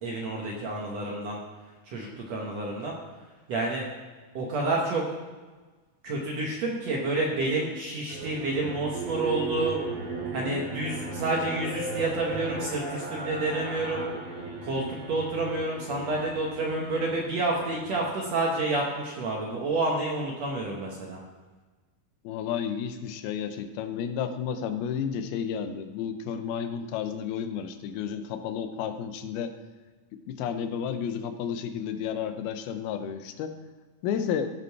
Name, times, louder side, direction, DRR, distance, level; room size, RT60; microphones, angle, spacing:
voice 1, 0.0-1.4 1.9-2.9 3.5-3.9 4.3-5.0 6.0-9.8 10.3-14.1 14.6-21.2, right 2 dB, 65° right, -2 dB, 1.7 m, -29 dB
sound 1, 8.1-18.5, right 3 dB, 45° right, 2.4 m, -36 dB
voice 2, 22.2-29.5 30.3-33.5 34.0-34.5, left 8 dB, 90° left, 8 dB, 2.7 m, -32 dB
15.5 x 5.3 x 4.6 m, 1.3 s
omnidirectional pair, 4.3 m